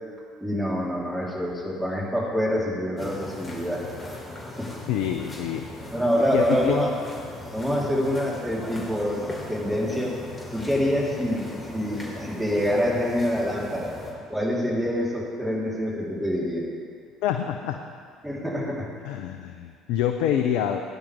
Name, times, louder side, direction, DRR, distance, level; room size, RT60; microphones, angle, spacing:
voice 1, 0.4-3.9 4.6-4.7 5.9-6.9 7.5-10.2 10.5-14.0 14.3-16.7 18.2-18.9, equal, 10° right, -5 dB, 3.8 m, -26 dB
sound 1, 3.0-14.1, left 1 dB, 25° left, 3.2 m, -39 dB
voice 2, 4.9-5.7 6.3-6.8 17.2-17.8 19.0-20.8, left 9 dB, 65° left, 6 dB, 0.6 m, -26 dB
18.0 x 10.0 x 3.6 m, 2.1 s
figure-of-eight pair, 55°, 0 cm